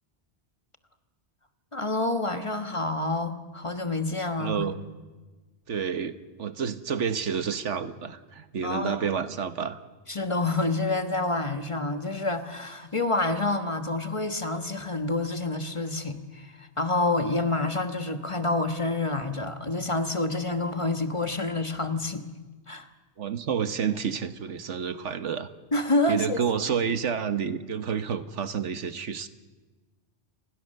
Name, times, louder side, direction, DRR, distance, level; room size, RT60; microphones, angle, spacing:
voice 1, 1.7-4.6 8.6-9.0 10.1-22.2 22.7-22.9 25.7-26.4, left 2 dB, 25° left, 8 dB, 1.3 m, -28 dB
voice 2, 4.4-4.9 5.7-9.8 23.2-25.5 26.1-29.3, right 7 dB, 80° right, 11 dB, 1.5 m, -29 dB
29.0 x 20.5 x 6.6 m, 1.3 s
omnidirectional pair, 1.2 m